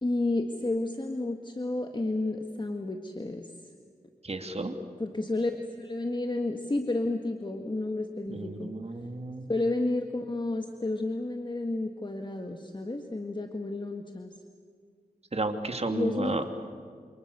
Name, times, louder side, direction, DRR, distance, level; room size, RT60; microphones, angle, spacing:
voice 1, 0.0-3.5 5.0-8.7 9.5-14.3 15.9-16.4, left 2 dB, 30° left, 5 dB, 1.8 m, -31 dB
voice 2, 4.2-4.7 8.3-9.5 15.3-16.4, right 2 dB, 45° right, 6 dB, 2.7 m, -32 dB
27.5 x 27.5 x 7.0 m, 2.1 s
wide cardioid pair, 60°, 15 cm